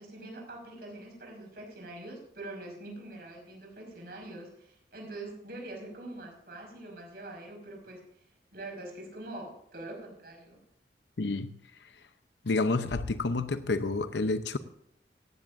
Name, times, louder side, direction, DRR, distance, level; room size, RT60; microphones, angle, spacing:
voice 1, 0.0-8.3 8.5-10.6, right 2 dB, 60° right, 5.3 m, -44 dB
voice 2, 11.2-11.5 12.4-14.6, left 3 dB, 85° left, 0.8 m, -29 dB
18.5 x 14.5 x 2.6 m
head